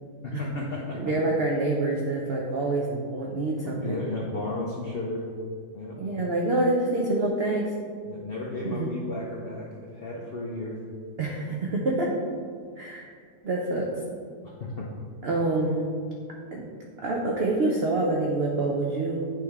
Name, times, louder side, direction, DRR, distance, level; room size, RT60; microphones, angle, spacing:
voice 1, 0.2-1.0 3.6-5.3 5.7-6.0 8.0-10.8 14.4-14.9, left 2 dB, 75° left, -2 dB, 0.5 m, -34 dB
voice 2, 0.9-4.0 6.0-7.7 8.6-8.9 11.2-12.1 12.8-13.1 13.4-13.9 15.2-15.9 16.5-16.6 17.0-19.3, right 2 dB, 75° right, -2 dB, 0.5 m, -26 dB
9.3 x 3.3 x 3.5 m, 2.1 s
omnidirectional pair, 1.9 m